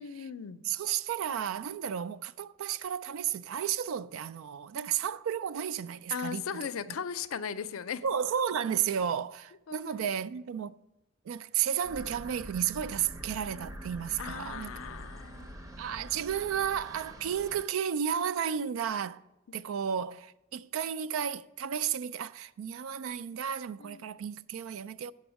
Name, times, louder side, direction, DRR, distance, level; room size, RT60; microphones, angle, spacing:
voice 1, 0.0-0.6 6.1-8.0 9.7-10.0 14.2-15.5 19.5-19.6 23.8-24.0, left 7 dB, 80° left, 0.5 m, -38 dB
voice 2, 0.7-6.6 8.0-10.8 11.3-14.7 15.8-19.2 19.5-25.1, right 8 dB, 75° right, 0.3 m, -33 dB
sound 1, 11.8-17.6, equal, 15° right, 0.6 m, -45 dB
7.0 x 5.3 x 6.8 m
head